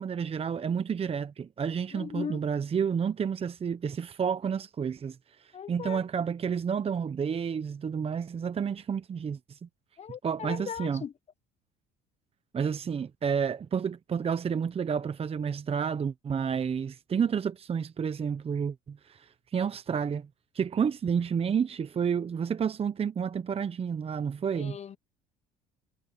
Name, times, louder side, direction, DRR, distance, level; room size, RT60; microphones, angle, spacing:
voice 1, 0.0-9.7 10.2-11.0 12.5-20.3 20.5-24.8, right 7 dB, 35° right, 1.0 m, -30 dB
voice 2, 1.9-2.4 5.5-6.1 10.0-11.1 24.5-25.0, left 7 dB, 40° left, 0.9 m, -38 dB
hypercardioid pair, 75°, 18 cm